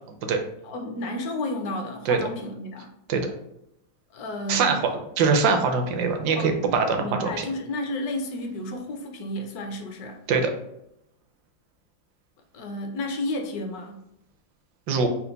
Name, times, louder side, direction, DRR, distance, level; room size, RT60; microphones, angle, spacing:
voice 1, 0.6-2.9 4.1-4.8 6.3-6.5 6.9-10.2 12.5-14.0, left 1 dB, 70° left, 3 dB, 1.0 m, -32 dB
voice 2, 5.2-7.4 10.3-10.5 14.9-15.1, right 5 dB, 70° right, 4 dB, 1.2 m, -22 dB
4.4 x 2.1 x 3.9 m, 0.80 s
omnidirectional pair, 1.9 m